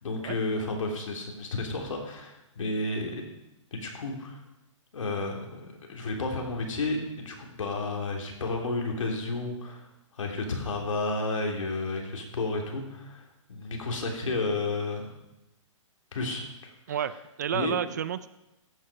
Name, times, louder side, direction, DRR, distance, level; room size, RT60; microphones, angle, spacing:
voice 1, 0.0-3.2 3.7-4.4 4.9-9.8 10.2-13.2 13.5-15.1 16.1-16.5 17.5-17.8, left 2 dB, 75° left, 1 dB, 3.4 m, -31 dB
voice 2, 16.9-18.3, right 9 dB, 35° right, 15 dB, 0.4 m, -31 dB
14.5 x 8.7 x 5.1 m, 0.93 s
hypercardioid pair, 165°, 17 cm